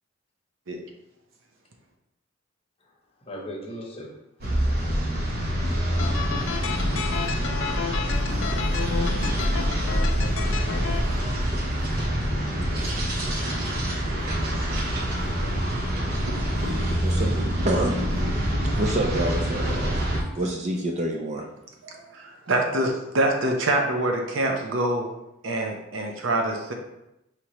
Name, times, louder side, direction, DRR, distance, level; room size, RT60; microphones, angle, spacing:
voice 1, 3.3-4.1 6.9-7.0 8.2-8.5 8.9-9.3 14.4-14.6 15.0-15.1 16.0-16.2 16.6-16.9 20.1-20.4, equal, 30° left, -1 dB, 0.9 m, -41 dB
sound 1, 4.4-20.2, equal, 50° right, 0.8 m, -26 dB
sound 2, 6.0-11.0, left 6 dB, 80° left, 0.4 m, -32 dB
voice 2, 16.5-18.0 18.8-21.5, right 1 dB, 35° right, 1 dB, 0.4 m, -28 dB
voice 3, 21.8-25.1 25.4-26.7, right 1 dB, 80° right, 2 dB, 0.7 m, -25 dB
5.0 x 2.9 x 3.0 m, 0.88 s
head